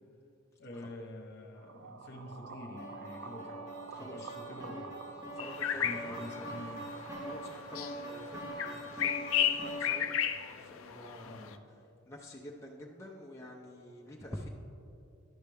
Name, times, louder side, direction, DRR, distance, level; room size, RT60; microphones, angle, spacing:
voice 1, 0.6-5.1 5.8-7.0 11.2-11.6, left 1 dB, 50° left, 1 dB, 1.0 m, -47 dB
sound 1, 1.5-7.6, right 4 dB, 65° right, 0.5 m, -49 dB
sound 2, 2.8-10.2, right 1 dB, 20° right, 2.1 m, -44 dB
voice 2, 3.9-4.4 5.3-6.2 7.2-10.1 10.5-11.6 12.1-14.5, left 1 dB, 15° left, -2 dB, 0.5 m, -48 dB
sound 3, 5.4-11.5, left 9 dB, 75° left, 0.4 m, -35 dB
10.5 x 6.6 x 3.4 m, 2.7 s
head